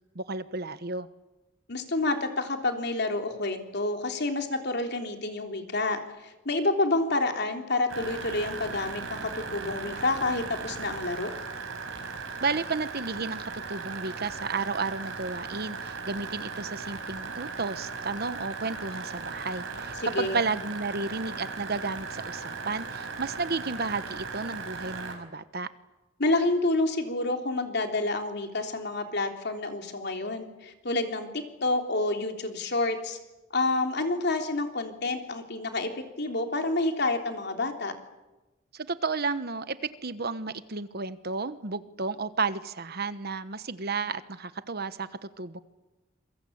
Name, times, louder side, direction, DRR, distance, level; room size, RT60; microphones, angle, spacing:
voice 1, 0.1-1.1 12.4-25.7 38.7-45.6, right 4 dB, 55° right, 13 dB, 1.2 m, -32 dB
voice 2, 1.7-11.3 20.0-20.4 26.2-33.2 33.5-37.9, left 2 dB, 60° left, 4 dB, 3.5 m, -29 dB
sound 1, 7.9-25.2, right 4 dB, 85° right, 5.5 m, -37 dB
27.0 x 23.5 x 8.7 m, 1.1 s
head